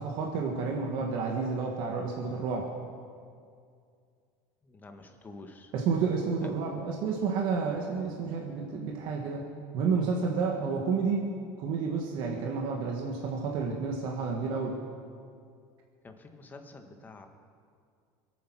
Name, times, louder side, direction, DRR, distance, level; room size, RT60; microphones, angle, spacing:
voice 1, 0.0-2.7 5.7-9.4 9.7-11.3 11.6-14.8, right 5 dB, 55° right, 0 dB, 1.8 m, -30 dB
voice 2, 4.6-5.7 6.4-6.5 16.0-17.3, left 3 dB, 20° left, 5 dB, 1.5 m, -48 dB
23.0 x 9.2 x 6.1 m, 2.3 s
supercardioid pair, 140°, 10 cm